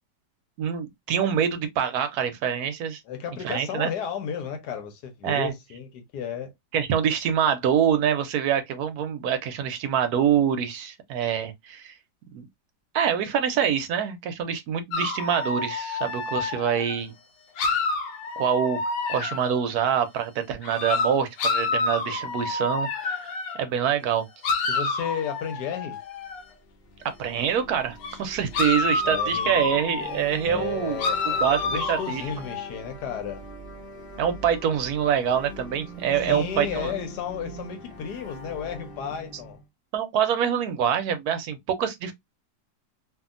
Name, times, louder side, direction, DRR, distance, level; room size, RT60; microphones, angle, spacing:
voice 1, 0.6-3.0 3.4-3.9 5.2-5.5 6.7-11.9 12.3-12.4 12.9-17.1 18.4-18.8 19.1-24.2 27.0-31.0 31.4-32.2 34.2-36.9 39.9-42.1, right 8 dB, 65° right, 1.0 m, -25 dB
voice 2, 3.1-6.5 24.7-26.0 28.8-29.7 30.4-33.4 36.2-39.6, left 7 dB, 70° left, 1.2 m, -33 dB
sound 1, 14.9-17.0 17.6-19.6 20.6-23.6 24.4-26.4 28.0-28.2 28.5-30.2 31.0-32.7, left 4 dB, 85° left, 1.3 m, -28 dB
sound 2, 26.6-39.6, right 1 dB, 50° left, 0.7 m, -42 dB
2.7 x 2.7 x 2.4 m
omnidirectional pair, 2.0 m